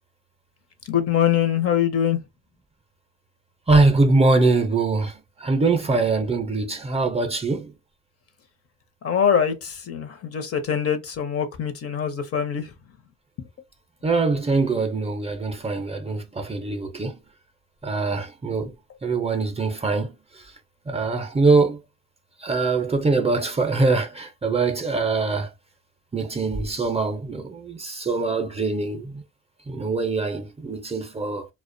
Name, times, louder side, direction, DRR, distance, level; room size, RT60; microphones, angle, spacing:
voice 1, 0.9-2.2 9.0-12.7, left 8 dB, 50° left, 0.6 m, -23 dB
voice 2, 3.7-7.7 14.0-17.2 17.8-18.7 19.0-20.2 20.9-21.8 22.4-25.5 26.1-29.2 29.7-31.5, right 3 dB, 20° right, 0.5 m, -23 dB
2.4 x 2.1 x 2.5 m
cardioid pair, 90°, 30 cm